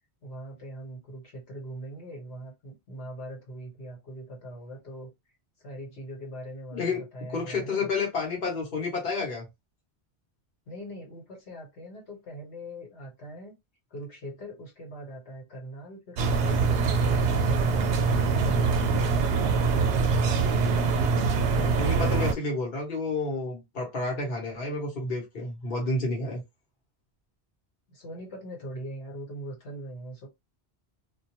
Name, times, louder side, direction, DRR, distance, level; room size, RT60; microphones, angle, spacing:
voice 1, 0.2-5.1 5.6-7.9 10.7-13.5 13.9-20.3 27.9-30.3, right 1 dB, 75° left, 1.3 m, -41 dB
voice 2, 6.7-7.0 7.3-9.5 21.5-26.4, left 3 dB, 60° left, 1.2 m, -30 dB
sound 1, 16.2-22.3, right 4 dB, 90° right, 0.9 m, -24 dB
2.4 x 2.2 x 2.9 m
omnidirectional pair, 1.1 m